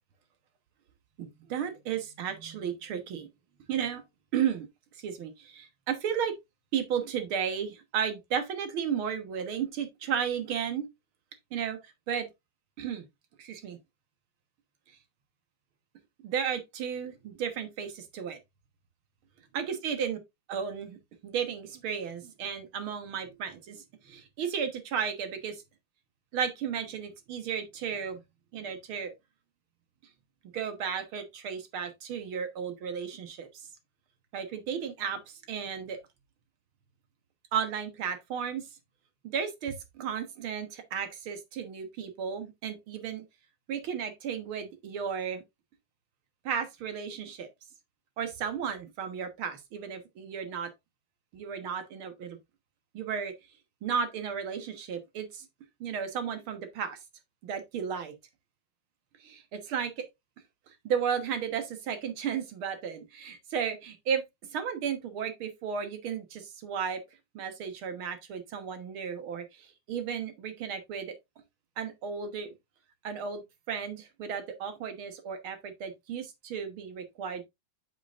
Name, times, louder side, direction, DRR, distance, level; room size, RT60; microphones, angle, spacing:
voice 1, 1.2-3.3 3.7-4.0 4.3-4.7 5.0-6.4 6.7-10.9 11.5-12.3 12.8-13.1 13.4-13.8 16.2-18.4 19.5-20.2 20.5-25.6 26.3-28.2 28.5-29.1 30.5-33.5 34.3-36.0 37.5-38.7 39.2-43.2 43.7-45.4 46.5-47.5 48.2-50.7 51.3-52.4 52.9-53.3 53.8-55.5 55.8-57.0 57.4-58.1 59.2-60.0 60.8-64.2 64.5-67.0 67.3-71.2 71.8-72.5 73.0-77.5, right 7 dB, 85° right, 2.2 m, -34 dB
8.0 x 7.0 x 2.5 m
omnidirectional pair, 2.2 m